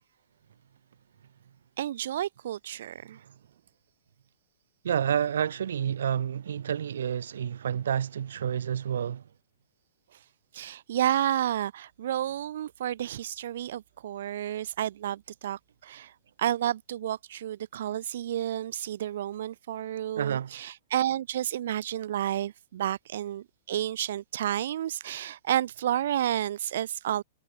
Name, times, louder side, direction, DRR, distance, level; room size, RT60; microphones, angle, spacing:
voice 1, 1.8-3.2 10.1-10.2 10.5-16.1 16.4-27.2, right 11 dB, 55° right, 0.6 m, -31 dB
voice 2, 4.8-9.2 20.2-20.5, right 9 dB, 80° right, 0.9 m, -29 dB
hypercardioid pair, 175°, 0 cm